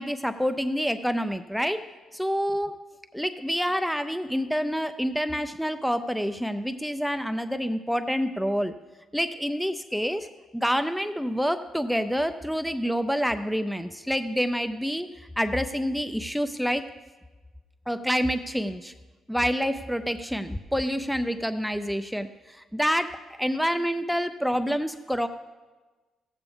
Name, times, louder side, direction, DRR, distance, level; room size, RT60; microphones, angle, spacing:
voice 1, 0.0-1.8 2.1-2.8 3.1-8.7 9.1-10.3 10.5-15.1 15.4-16.9 17.9-18.9 19.3-25.3, equal, ahead, 9 dB, 0.4 m, -27 dB
14.5 x 8.2 x 3.5 m, 1.2 s
cardioid pair, 90°, 0 cm